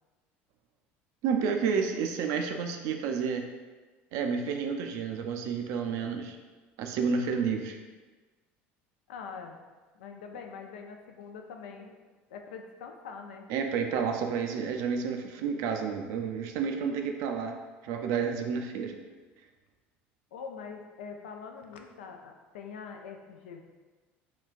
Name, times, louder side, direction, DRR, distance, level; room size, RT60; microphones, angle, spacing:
voice 1, 1.2-3.4 4.1-6.4 6.8-7.8 13.5-17.6 17.8-18.9, right 6 dB, 70° right, 4 dB, 0.4 m, -30 dB
voice 2, 9.1-9.6 9.9-12.0 12.3-13.5 20.3-23.6, left 5 dB, 90° left, 4 dB, 0.3 m, -43 dB
3.9 x 2.2 x 2.4 m, 1.3 s
supercardioid pair, 90°, 6 cm